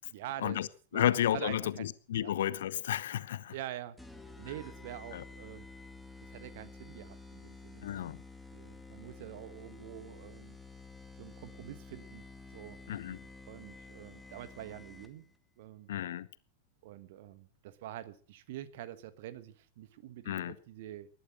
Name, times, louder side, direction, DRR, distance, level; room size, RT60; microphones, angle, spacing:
voice 1, 0.1-0.6 0.9-1.9 2.2-2.3 3.5-4.0 4.4-5.7 6.3-7.8 8.5-10.6 11.2-12.2 12.5-12.8 13.5-15.3 15.6-15.9 16.8-21.1, right 13 dB, 50° right, 1.5 m, -45 dB
voice 2, 0.9-3.5 5.1-5.2 7.8-8.2 12.9-13.3 15.9-16.3 20.3-20.6, left 11 dB, 60° left, 1.0 m, -32 dB
sound 1, 4.0-15.4, left 3 dB, ahead, 2.0 m, -51 dB
19.5 x 11.5 x 6.3 m
figure-of-eight pair, 90°, 0 cm